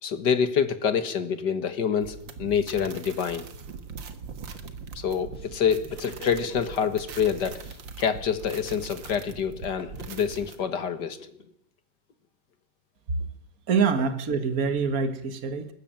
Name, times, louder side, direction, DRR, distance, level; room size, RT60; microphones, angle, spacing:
voice 1, 0.0-3.5 5.0-7.6 8.0-11.2, left 7 dB, 65° left, 11 dB, 2.2 m, -26 dB
sound 1, 2.0-10.6, right 5 dB, 85° right, 2.4 m, -41 dB
sound 2, 5.3-7.0 7.6-7.8 9.8-11.4, left 2 dB, 35° left, 2.4 m, -43 dB
voice 2, 13.7-15.7, right 5 dB, 50° right, 10 dB, 2.1 m, -25 dB
19.5 x 14.5 x 9.1 m, 0.72 s
omnidirectional pair, 2.0 m